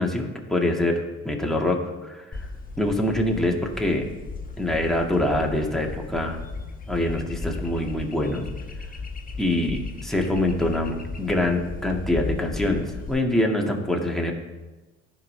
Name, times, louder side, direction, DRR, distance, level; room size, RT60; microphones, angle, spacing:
voice 1, 0.0-2.2 2.8-4.0 4.6-6.4 6.9-8.5 9.4-14.3, left 1 dB, ahead, 0 dB, 1.9 m, -25 dB
sound 1, 2.3-13.1, left 3 dB, 25° left, 1.1 m, -36 dB
14.5 x 5.7 x 3.3 m, 1.1 s
hypercardioid pair, 55°, 32 cm